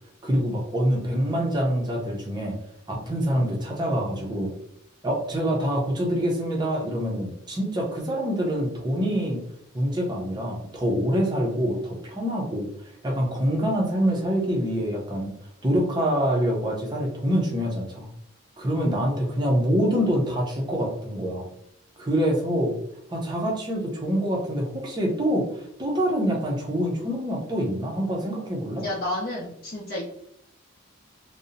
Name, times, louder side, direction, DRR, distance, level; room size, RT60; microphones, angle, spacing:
voice 1, 0.2-2.6 2.9-4.5 5.0-9.4 9.7-15.3 15.6-18.1 18.6-21.5 22.0-22.8 23.1-28.8, equal, 20° right, -1 dB, 0.5 m, -25 dB
voice 2, 28.8-30.0, left 1 dB, 45° left, -7 dB, 0.5 m, -30 dB
2.7 x 2.0 x 2.5 m, 0.75 s
head